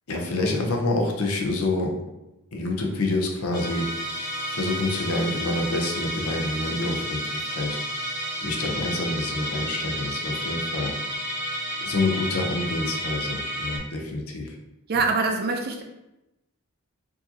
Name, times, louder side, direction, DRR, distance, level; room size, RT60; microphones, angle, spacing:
voice 1, 0.1-1.9 2.5-7.8 8.4-10.9 11.8-14.5, left 2 dB, 75° left, 1 dB, 0.7 m, -27 dB
Musical instrument, 3.5-13.8, equal, 50° left, 1.3 m, -31 dB
voice 2, 14.9-15.8, right 4 dB, 45° right, 4 dB, 0.5 m, -24 dB
4.7 x 2.7 x 2.8 m, 0.94 s
head